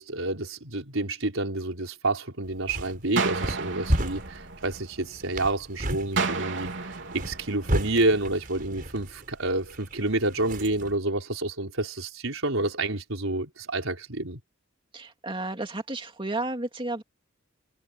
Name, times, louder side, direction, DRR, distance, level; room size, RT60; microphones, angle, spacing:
voice 1, 0.0-14.4, right 2 dB, 85° right, 4.6 m, -29 dB
sound 1, 2.4-11.0, right 1 dB, 45° right, 4.6 m, -34 dB
sound 2, 3.2-5.2 6.2-8.2, right 4 dB, 65° right, 4.1 m, -32 dB
voice 2, 14.9-17.0, right 2 dB, 25° right, 2.5 m, -32 dB
head